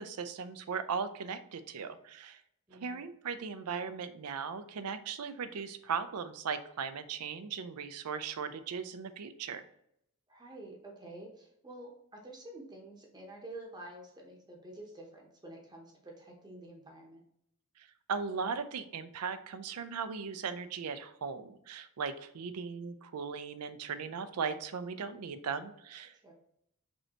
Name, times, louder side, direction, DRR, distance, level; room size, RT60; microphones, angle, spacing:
voice 1, 0.0-2.4 2.8-9.6 18.1-26.1, right 6 dB, 90° right, 11 dB, 0.5 m, -38 dB
voice 2, 2.7-3.1 10.3-17.2 26.2-26.3, right 1 dB, 20° right, -1 dB, 0.7 m, -49 dB
5.3 x 3.2 x 2.9 m, 0.74 s
head